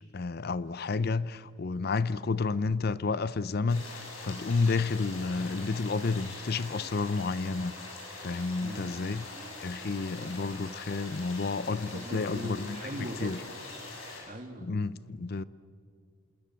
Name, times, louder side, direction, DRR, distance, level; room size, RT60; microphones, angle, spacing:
voice 1, 0.1-7.7 8.2-9.3 9.6-12.8 13.2-13.4 14.1-14.3 14.6-15.4, left 4 dB, 50° left, 0.5 m, -31 dB
sound 1, 3.7-14.2, left 2 dB, 80° left, 7.3 m, -43 dB
voice 2, 8.6-9.0 11.8-13.4 14.2-14.9, equal, 40° right, 2.2 m, -40 dB
27.5 x 20.5 x 7.5 m
head